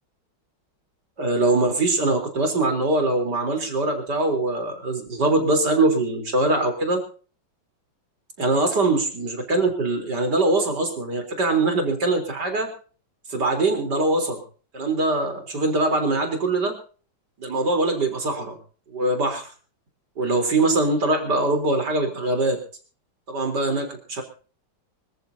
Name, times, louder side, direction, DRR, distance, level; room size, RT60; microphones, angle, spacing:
voice 1, 1.2-7.0 8.4-12.7 13.3-14.4 14.7-16.8 17.4-18.6 18.9-19.5 20.2-22.6 23.3-24.2, right 2 dB, 55° right, 4 dB, 4.4 m, -22 dB
25.5 x 14.0 x 2.8 m, 0.40 s
omnidirectional pair, 2.2 m